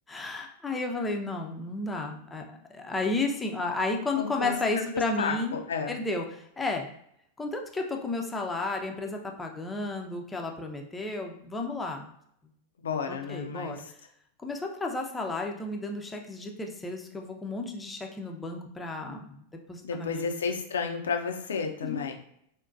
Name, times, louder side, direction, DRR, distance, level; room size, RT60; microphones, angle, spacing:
voice 1, 0.1-5.6 5.9-6.9 7.4-12.1 13.1-13.8 14.4-19.4 19.7-20.2 21.8-22.0, left 2 dB, 10° left, 2 dB, 0.5 m, -32 dB
voice 2, 4.2-6.0 12.8-13.8 19.8-22.1, left 5 dB, 65° left, 4 dB, 0.4 m, -32 dB
3.9 x 2.1 x 2.4 m, 0.71 s
figure-of-eight pair, 90°, 0 cm